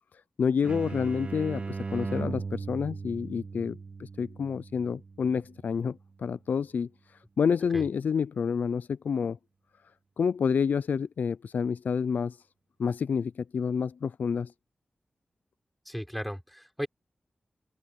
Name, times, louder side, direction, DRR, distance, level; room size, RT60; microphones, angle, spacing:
voice 1, 0.4-6.9 7.4-9.4 10.2-12.4 12.8-14.5, left 6 dB, 85° left, 0.4 m, -29 dB
sound 1, 0.6-6.1, right 4 dB, 45° right, 1.4 m, -38 dB
voice 2, 15.8-16.9, equal, ahead, 6.1 m, -35 dB
wide cardioid pair, 110°, 3 cm